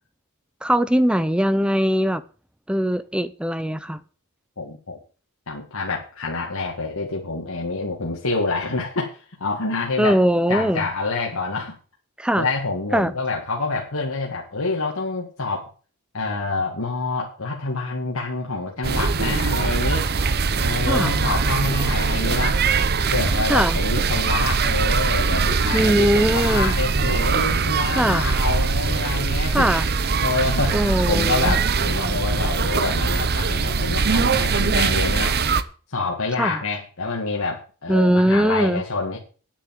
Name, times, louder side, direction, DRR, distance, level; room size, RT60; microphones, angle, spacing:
voice 1, 0.6-2.2 2.7-4.0 10.0-10.8 12.2-12.5 12.9-13.1 20.9-21.1 23.5-23.8 25.7-26.7 27.9-28.3 29.5-29.9 30.7-31.5 36.4-36.6 37.9-38.8, equal, 5° right, 0.6 m, -20 dB
voice 2, 4.6-5.0 5.5-10.2 10.5-11.8 12.4-15.7 16.1-20.1 20.6-22.6 23.1-29.7 30.2-35.4 35.9-39.2, left 3 dB, 70° left, 2.0 m, -27 dB
sound 1, 18.8-35.6, right 4 dB, 45° right, 0.7 m, -22 dB
9.9 x 7.6 x 7.5 m
head